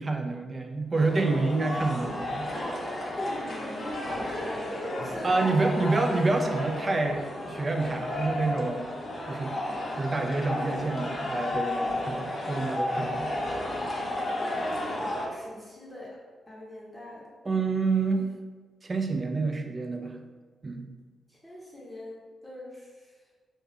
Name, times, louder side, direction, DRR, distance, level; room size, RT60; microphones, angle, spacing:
voice 1, 0.0-2.5 5.2-8.9 9.3-13.3 17.4-18.3 18.8-20.2 20.6-20.9, right 3 dB, 40° right, 4 dB, 0.3 m, -28 dB
sound 1, 0.9-15.3, left 1 dB, 60° left, 0.5 m, -33 dB
voice 2, 3.2-5.9 14.4-16.2 16.5-17.3 21.3-23.1, left 1 dB, 15° left, -6 dB, 0.7 m, -42 dB
2.4 x 2.1 x 2.4 m, 1.4 s
supercardioid pair, 50°, 0 cm